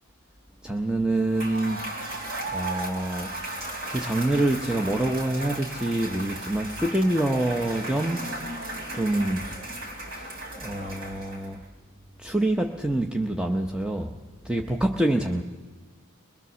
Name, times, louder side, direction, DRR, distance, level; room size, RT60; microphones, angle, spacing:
voice 1, 0.6-2.1 2.5-3.3 3.8-8.3 8.9-9.5 10.1-10.3 10.6-11.6 12.2-14.1 14.4-15.4, right 1 dB, 5° right, 3 dB, 0.7 m, -26 dB
Cheering / Applause / Crowd, 1.2-11.6, right 1 dB, 70° right, 3.8 m, -36 dB
22.0 x 22.0 x 6.9 m, 1.3 s
head